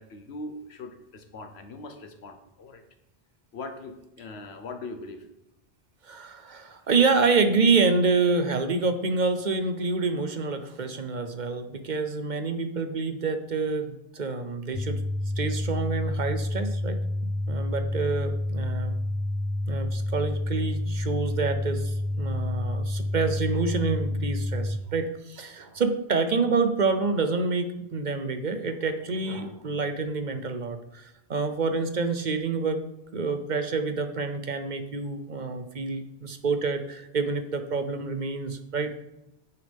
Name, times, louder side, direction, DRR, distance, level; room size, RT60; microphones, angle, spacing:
voice 1, 0.0-2.8 3.5-5.3, left 2 dB, 85° left, 7 dB, 1.2 m, -40 dB
voice 2, 6.0-15.0 15.4-19.0 19.7-32.8 33.1-39.0, right 4 dB, 50° right, 8 dB, 0.8 m, -27 dB
sound 1, 14.7-24.7, left 1 dB, 30° left, 3.3 m, -29 dB
9.2 x 6.7 x 3.5 m, 0.90 s
omnidirectional pair, 1.1 m